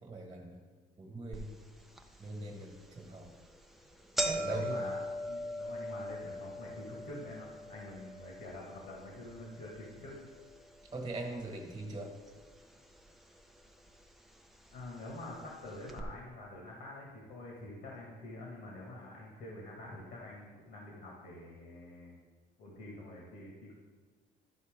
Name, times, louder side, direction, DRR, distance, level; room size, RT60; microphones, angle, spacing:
voice 1, 0.0-0.6 1.0-1.6 2.2-3.3 4.2-4.9 10.9-12.1, right 2 dB, 25° right, 1 dB, 1.4 m, -41 dB
sound 1, 1.3-1.4 2.0-2.1 2.9-3.1 3.4-3.5 3.8-12.0 12.3-13.0 13.8-13.9 14.8-14.9 15.2-15.3 15.9-16.0, equal, ahead, 0.6 m, -40 dB
voice 2, 4.2-10.3 14.7-22.2 22.6-23.7, left 1 dB, 75° left, -3 dB, 1.8 m, -47 dB
12.5 x 4.2 x 3.7 m, 1.5 s
cardioid pair, 110°, 17 cm